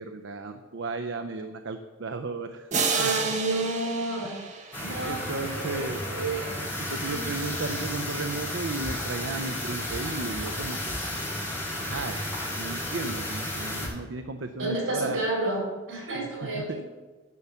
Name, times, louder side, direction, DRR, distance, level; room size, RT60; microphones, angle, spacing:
voice 1, 0.0-2.7 3.0-3.3 4.2-4.4 5.0-6.0 6.8-11.0 11.8-12.2 12.6-15.2 16.1-16.8, right 3 dB, 65° right, 7 dB, 0.6 m, -35 dB
sound 1, 2.7-5.4, right 5 dB, 35° right, 0.9 m, -30 dB
voice 2, 2.9-4.4 4.8-6.6 7.0-7.5 14.6-16.8, right 2 dB, 80° right, -2 dB, 4.0 m, -31 dB
sound 2, 4.7-13.9, left 1 dB, 10° left, 3.5 m, -33 dB
11.0 x 5.6 x 7.1 m, 1.3 s
head